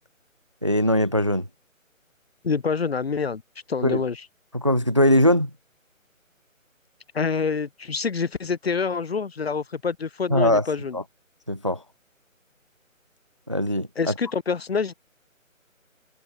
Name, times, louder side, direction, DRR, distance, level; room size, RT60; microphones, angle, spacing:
voice 1, 0.6-1.5 3.8-4.0 4.5-5.5 10.3-10.7 10.9-11.0 11.5-11.8 13.5-14.1, equal, 25° right, 0.7 m, -21 dB
voice 2, 2.4-3.4 3.7-4.2 7.1-11.0 14.0-14.9, left 5 dB, 45° left, 3.3 m, -26 dB
hypercardioid pair, 170°, 41 cm